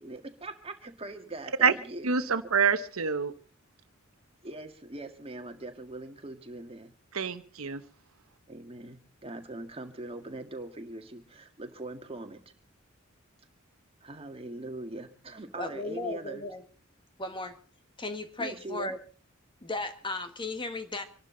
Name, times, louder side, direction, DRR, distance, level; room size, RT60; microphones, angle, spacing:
voice 1, 0.0-2.1 4.4-6.9 8.5-12.4 14.0-16.4 18.4-18.9, right 2 dB, 30° right, 1.9 m, -41 dB
voice 2, 2.0-3.3 7.1-7.8, right 6 dB, 90° right, 1.0 m, -26 dB
voice 3, 15.6-16.6 17.2-17.6 18.0-19.0 19.6-21.0, left 2 dB, 25° left, 1.5 m, -35 dB
26.0 x 12.0 x 3.9 m
head